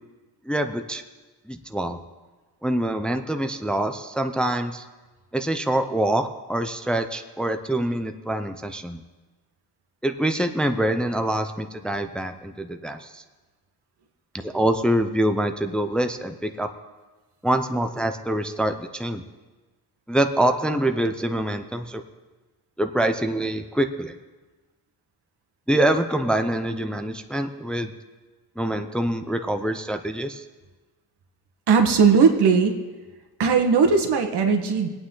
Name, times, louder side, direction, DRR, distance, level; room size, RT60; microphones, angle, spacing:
voice 1, 0.5-1.0 1.5-2.0 2.6-4.8 5.3-9.0 10.0-13.2 14.3-16.7 17.4-19.2 20.1-22.0 22.8-24.2 25.7-27.9 28.6-30.4, right 1 dB, ahead, 7 dB, 0.5 m, -25 dB
voice 2, 31.7-32.7 33.4-34.9, right 5 dB, 85° right, 4 dB, 1.5 m, -18 dB
23.5 x 8.8 x 3.8 m, 1.3 s
wide cardioid pair, 155°, 39 cm